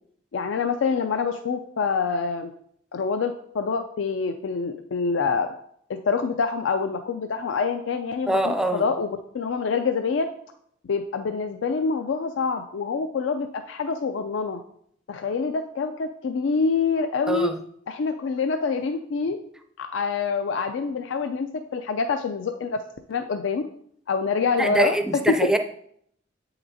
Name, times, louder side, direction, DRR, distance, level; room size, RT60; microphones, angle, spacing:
voice 1, 0.3-2.5 2.9-5.5 5.9-10.3 10.9-14.6 15.1-17.5 17.9-19.4 19.8-22.8 23.1-23.6 24.1-25.0 25.3-25.4, left 5 dB, 80° left, 7 dB, 0.4 m, -26 dB
voice 2, 8.3-8.8 17.3-17.6 24.6-25.6, right 1 dB, 5° right, 7 dB, 0.4 m, -23 dB
7.8 x 5.8 x 2.7 m, 0.68 s
head